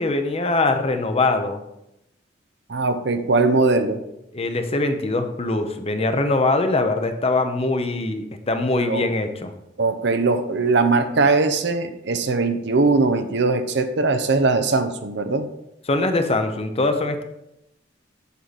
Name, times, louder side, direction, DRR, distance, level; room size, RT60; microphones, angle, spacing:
voice 1, 0.0-1.6 4.3-9.5 15.9-17.2, left 2 dB, 35° left, 7 dB, 0.8 m, -22 dB
voice 2, 2.7-4.0 8.8-9.1 9.8-15.5, right 3 dB, 65° right, 9 dB, 0.7 m, -20 dB
8.1 x 6.4 x 4.1 m, 0.84 s
head